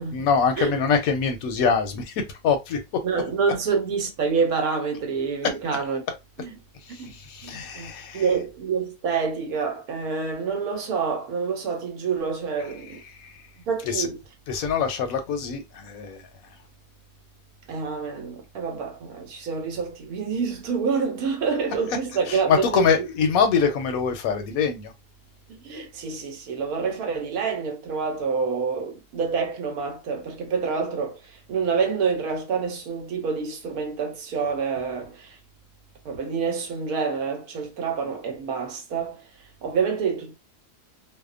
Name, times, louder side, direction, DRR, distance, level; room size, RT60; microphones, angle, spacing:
voice 1, 0.0-2.1 2.4-2.8 5.4-5.5 6.1-6.2 6.9-8.4 12.6-13.3 13.8-14.1 14.5-16.2 21.9-24.9, left 6 dB, 70° left, 1.0 m, -24 dB
voice 2, 3.0-6.0 6.4-6.5 7.0-7.1 7.4-13.0 13.7-14.2 17.7-23.0 25.5-35.4 36.0-39.2 39.6-40.4, right 5 dB, 70° right, 1.2 m, -27 dB
2.7 x 2.1 x 2.3 m
omnidirectional pair, 1.7 m